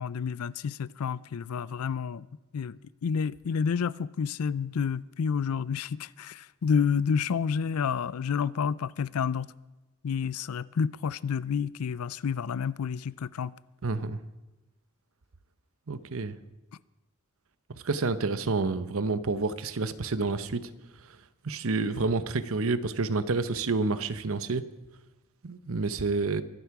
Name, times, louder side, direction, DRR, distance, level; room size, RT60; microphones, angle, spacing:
voice 1, 0.0-2.3 2.5-9.5 10.0-13.5, left 6 dB, 80° left, 0.4 m, -29 dB
voice 2, 13.8-14.2 15.9-16.4 17.8-20.7 21.4-24.6 25.4-26.4, right 3 dB, 65° right, 0.8 m, -29 dB
23.5 x 8.3 x 6.0 m
head